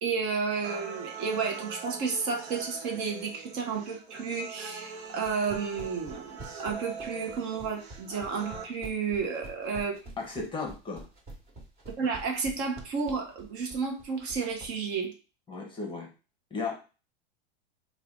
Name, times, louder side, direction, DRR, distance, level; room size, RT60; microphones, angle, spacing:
voice 1, 0.0-10.0 12.0-15.1, right 5 dB, 45° right, 2 dB, 1.0 m, -32 dB
sound 1, 0.6-8.6, right 5 dB, 75° right, 0.9 m, -42 dB
sound 2, 5.1-14.7, right 2 dB, 30° right, 1.6 m, -46 dB
voice 2, 10.2-11.0 15.5-16.1 16.5-16.7, left 4 dB, 15° left, 1 dB, 0.9 m, -35 dB
3.3 x 2.4 x 3.7 m, 0.33 s
supercardioid pair, 125°, 32 cm